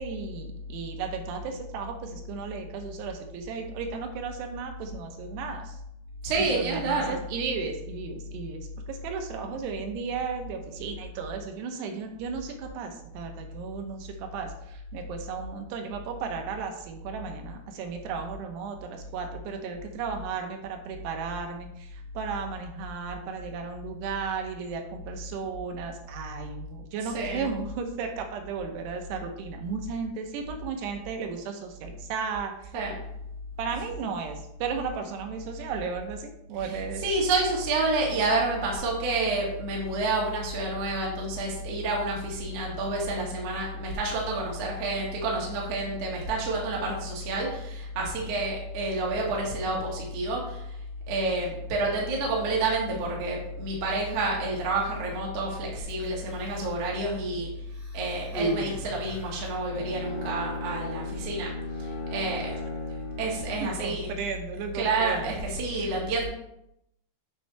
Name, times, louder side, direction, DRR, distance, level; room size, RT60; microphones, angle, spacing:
voice 1, 0.0-5.8 6.4-32.7 33.6-37.0 63.6-65.3, right 5 dB, 75° right, 4 dB, 2.8 m, -35 dB
voice 2, 6.2-7.2 27.1-27.5 32.7-33.0 36.5-50.8 51.1-57.5 57.9-61.5 61.8-62.6 63.2-64.2 64.7-66.2, right 2 dB, 50° right, -3 dB, 2.1 m, -29 dB
Human voice, 55.9-56.8 57.7-59.6 60.5-60.7, right 2 dB, ahead, 1.4 m, -36 dB
Bowed string instrument, 59.7-63.9, left 2 dB, 75° left, 3.5 m, -37 dB
9.1 x 5.7 x 3.4 m, 0.80 s
omnidirectional pair, 5.2 m